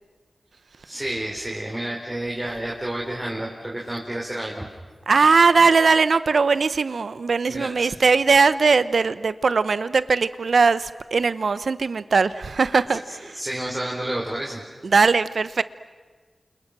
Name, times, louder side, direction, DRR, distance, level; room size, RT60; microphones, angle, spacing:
voice 1, 0.8-4.7 7.5-7.9 12.9-13.0 13.3-14.6, right 1 dB, 20° right, -3 dB, 4.6 m, -30 dB
voice 2, 5.1-13.0 14.8-15.6, right 4 dB, 80° right, 15 dB, 0.8 m, -19 dB
29.5 x 28.5 x 6.1 m, 1.4 s
cardioid pair, 50°, 0 cm